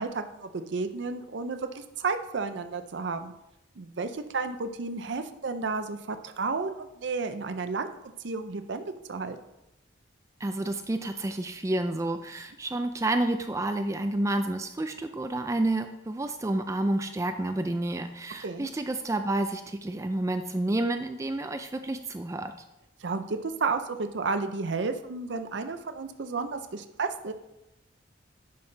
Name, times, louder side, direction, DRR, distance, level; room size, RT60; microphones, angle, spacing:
voice 1, 0.0-3.3 3.8-8.0 8.2-9.4 18.4-18.7 23.0-27.3, right 4 dB, 70° right, 8 dB, 0.6 m, -32 dB
voice 2, 10.4-22.5, right 1 dB, 15° right, 8 dB, 0.3 m, -29 dB
10.5 x 5.5 x 3.3 m, 0.92 s
head